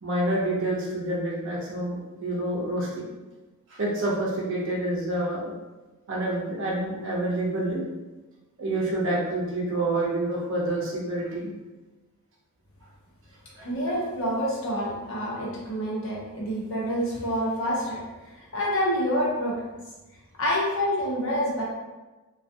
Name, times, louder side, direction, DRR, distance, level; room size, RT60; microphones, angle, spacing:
voice 1, 0.0-3.1 3.7-5.5 6.1-7.8 8.6-11.5 13.6-13.7, right 1 dB, 60° right, -3 dB, 0.6 m, -28 dB
voice 2, 13.6-18.0 18.5-19.6 20.4-21.6, equal, 60° left, -5 dB, 0.8 m, -27 dB
2.4 x 2.3 x 2.6 m, 1.2 s
head